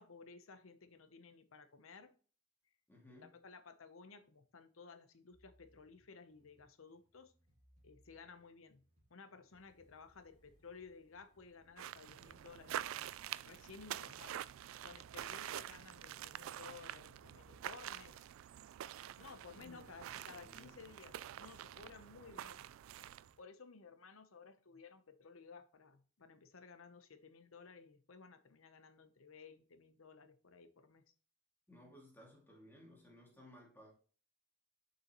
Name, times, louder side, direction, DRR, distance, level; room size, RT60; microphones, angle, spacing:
voice 1, 0.0-2.1 3.2-7.3 7.8-8.8 9.1-14.4 14.8-18.3 19.2-22.7 23.4-31.1, left 5 dB, 85° left, 0.8 m, -57 dB
voice 2, 2.9-3.4 14.0-14.2 19.5-19.8 20.1-20.7 31.7-33.9, left 1 dB, 10° left, 2.3 m, -59 dB
sound 1, 5.3-23.4, equal, 35° right, 2.5 m, -74 dB
sound 2, 9.4-14.5, equal, 30° left, 2.7 m, -74 dB
sound 3, 11.8-23.3, right 11 dB, 85° right, 0.3 m, -47 dB
6.7 x 5.6 x 3.0 m
head